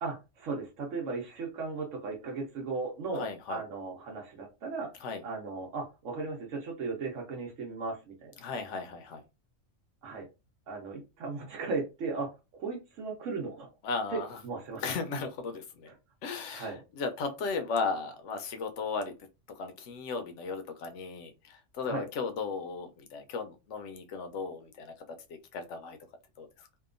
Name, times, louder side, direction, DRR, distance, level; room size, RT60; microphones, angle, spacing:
voice 1, 0.0-4.9 5.2-8.4 10.0-10.3 10.7-13.7 14.1-14.8 15.9-16.0 16.5-16.8 21.8-22.0, right 4 dB, 85° right, 1.0 m, -36 dB
voice 2, 3.1-3.6 5.0-5.2 8.4-9.2 13.8-14.4 14.8-15.9 16.2-19.1 19.5-25.2 25.5-26.0 26.4-26.5, left 4 dB, 75° left, 0.9 m, -36 dB
2.7 x 2.2 x 2.4 m
omnidirectional pair, 1.3 m